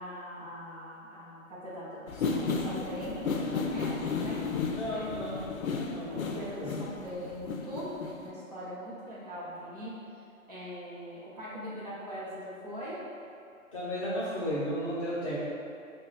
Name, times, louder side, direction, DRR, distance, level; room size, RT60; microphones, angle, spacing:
voice 1, 0.0-5.2 6.0-10.0 10.5-13.1, equal, 30° right, -10 dB, 0.7 m, -41 dB
sound 1, 2.1-8.3, left 4 dB, 75° left, 0.5 m, -33 dB
voice 2, 4.7-5.5 5.9-6.7 13.7-15.4, equal, 25° left, -12 dB, 0.7 m, -34 dB
3.1 x 2.2 x 3.8 m, 2.6 s
figure-of-eight pair, 140°, 41 cm